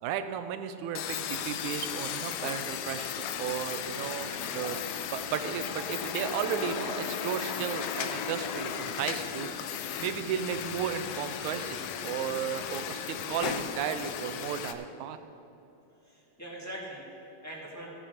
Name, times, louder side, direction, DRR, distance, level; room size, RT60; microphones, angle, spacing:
voice 1, 0.0-4.8 5.1-9.5 10.0-15.2, right 9 dB, 80° right, 10 dB, 1.9 m, -34 dB
sound 1, 0.9-14.7, left 8 dB, 80° left, 1.5 m, -35 dB
voice 2, 4.1-4.6 16.0-17.9, right 1 dB, 5° left, -5 dB, 1.4 m, -43 dB
15.5 x 7.1 x 5.1 m, 3.0 s
omnidirectional pair, 3.6 m